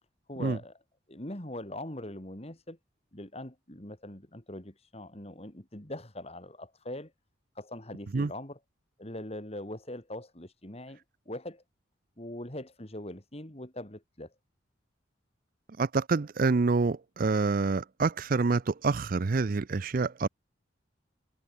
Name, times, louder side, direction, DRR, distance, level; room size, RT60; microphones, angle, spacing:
voice 1, 0.3-0.7 1.1-2.8 3.1-7.1 7.5-8.6 9.0-11.6 12.2-14.3, left 1 dB, 30° left, 3.1 m, -42 dB
voice 2, 15.8-20.3, right 4 dB, 45° right, 0.5 m, -27 dB
head